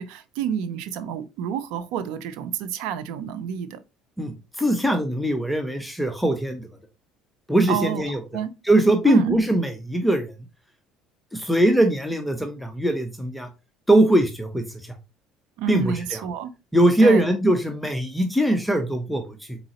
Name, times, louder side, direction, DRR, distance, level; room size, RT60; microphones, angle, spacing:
voice 1, 0.0-3.8 7.7-8.0 8.3-8.5 9.1-9.4 15.6-16.5 17.0-17.2, right 8 dB, 75° right, 0.5 m, -28 dB
voice 2, 4.2-6.7 7.5-8.2 8.6-10.3 11.3-13.5 13.9-14.9 15.7-16.2 16.7-19.6, right 1 dB, ahead, 0.7 m, -21 dB
4.0 x 3.8 x 2.8 m
supercardioid pair, 80°, 0 cm